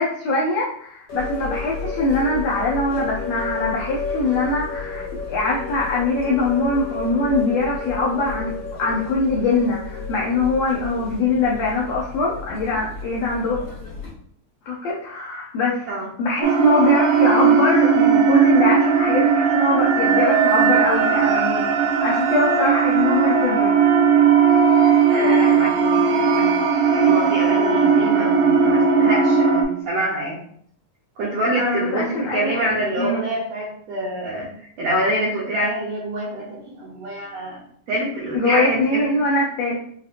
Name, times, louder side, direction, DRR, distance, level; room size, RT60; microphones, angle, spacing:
voice 1, 0.0-8.5 8.8-13.6 14.7-15.9 16.2-23.7 31.6-32.7 33.0-33.2 38.3-39.8, left 2 dB, 85° left, -4 dB, 1.4 m, -22 dB
sound 1, 1.1-14.1, left 4 dB, 50° left, 1.3 m, -31 dB
sound 2, 16.4-29.6, right 6 dB, 85° right, 2.2 m, -17 dB
voice 2, 25.1-26.6 26.9-30.4 31.2-37.6 37.9-39.1, right 1 dB, 70° right, -6 dB, 1.8 m, -26 dB
5.5 x 2.8 x 2.4 m, 0.63 s
omnidirectional pair, 3.9 m